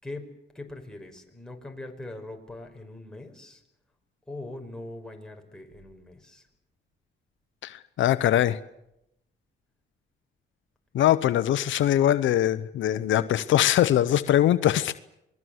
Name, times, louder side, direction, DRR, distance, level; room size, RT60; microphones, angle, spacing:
voice 1, 0.0-3.6 4.3-6.5, left 2 dB, 5° left, 2 dB, 5.5 m, -41 dB
voice 2, 7.6-8.6 10.9-14.9, left 12 dB, 75° left, 13 dB, 0.9 m, -22 dB
27.5 x 20.5 x 8.0 m, 0.82 s
cardioid pair, 90°, 20 cm